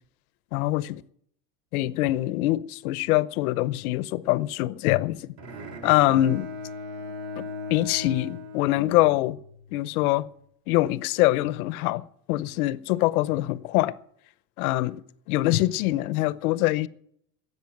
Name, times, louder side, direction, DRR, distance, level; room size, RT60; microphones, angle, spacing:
voice 1, 0.5-1.0 1.7-5.3 5.8-6.5 7.4-7.5 7.7-9.4 9.7-10.3 10.7-12.0 12.3-13.9 14.6-15.0 15.3-16.9, left 16 dB, 70° left, 0.8 m, -24 dB
Bowed string instrument, 5.4-9.6, left 2 dB, 35° right, 2.8 m, -38 dB
13.0 x 8.5 x 9.0 m
supercardioid pair, 155°, 45 cm